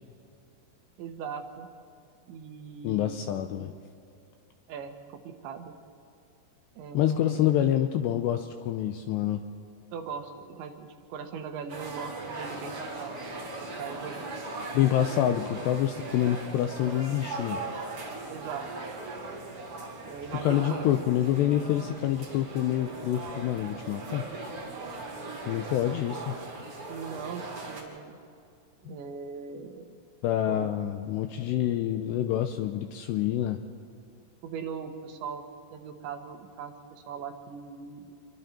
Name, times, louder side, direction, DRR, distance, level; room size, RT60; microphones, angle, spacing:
voice 1, 1.0-1.7 2.3-3.3 4.7-5.7 6.8-7.6 9.9-13.4 13.8-14.2 15.0-15.1 18.3-19.0 20.0-20.9 24.9-25.0 26.9-28.2 28.8-29.9 30.5-30.7 34.4-35.4 35.7-38.1, right 6 dB, 75° right, 5 dB, 3.4 m, -40 dB
voice 2, 2.8-3.7 6.9-9.4 14.7-17.6 20.4-24.3 25.5-26.4 28.9-29.0 30.2-33.6, left 11 dB, 85° left, 7 dB, 2.5 m, -27 dB
sound 1, 11.7-27.8, right 2 dB, 35° right, 3.3 m, -39 dB
27.5 x 23.0 x 4.4 m, 2.5 s
omnidirectional pair, 5.7 m